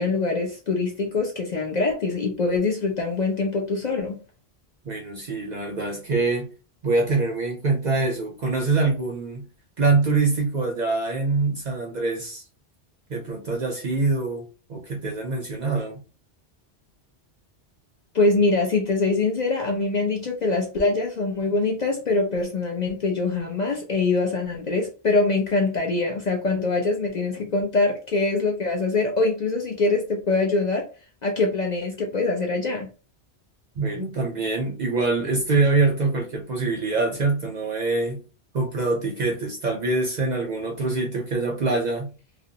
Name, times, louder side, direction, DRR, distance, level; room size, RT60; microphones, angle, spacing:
voice 1, 0.0-4.2 18.1-30.9 31.2-32.9, left 3 dB, 55° left, 0.5 m, -24 dB
voice 2, 4.8-6.5 6.8-9.5 9.8-12.4 13.1-14.4 14.7-16.0 33.8-38.2 38.5-42.2, right 3 dB, 55° right, 0.5 m, -24 dB
2.4 x 2.0 x 2.6 m
omnidirectional pair, 1.1 m